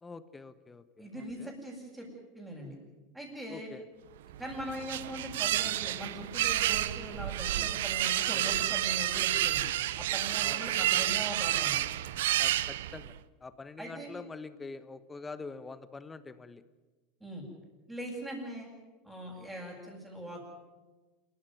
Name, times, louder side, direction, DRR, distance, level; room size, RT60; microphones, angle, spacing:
voice 1, 0.0-1.5 3.5-3.8 10.4-10.6 12.4-16.6, left 4 dB, 15° left, 13 dB, 1.3 m, -45 dB
voice 2, 1.0-2.1 2.3-2.8 3.1-3.7 4.4-11.8 13.8-14.1 17.2-17.4 17.9-18.7 19.0-20.5, equal, 10° right, -6 dB, 7.8 m, -41 dB
sound 1, 4.3-13.2, right 14 dB, 70° right, 0.8 m, -30 dB
27.0 x 15.0 x 9.6 m, 1.2 s
hypercardioid pair, 85°, 0 cm